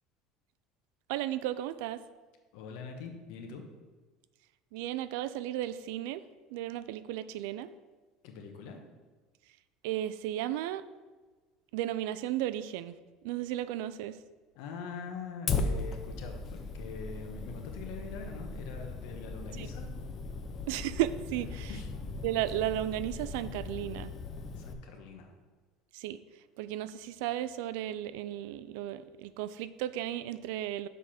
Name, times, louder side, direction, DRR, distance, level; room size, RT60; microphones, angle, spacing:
voice 1, 1.1-2.0 4.7-6.2 6.5-7.7 9.8-10.8 11.7-12.9 13.2-14.2 19.6-19.7 20.7-21.7 22.2-24.1 25.9-26.2 26.6-30.9, right 13 dB, 80° right, 15 dB, 0.4 m, -34 dB
voice 2, 2.5-3.7 8.2-8.8 14.5-19.9 21.5-21.9 24.6-25.3, left 5 dB, 75° left, 4 dB, 1.2 m, -43 dB
Fire, 15.5-24.7, left 3 dB, 35° left, 0.6 m, -38 dB
6.7 x 4.8 x 5.8 m, 1.3 s
cardioid pair, 145°, 0 cm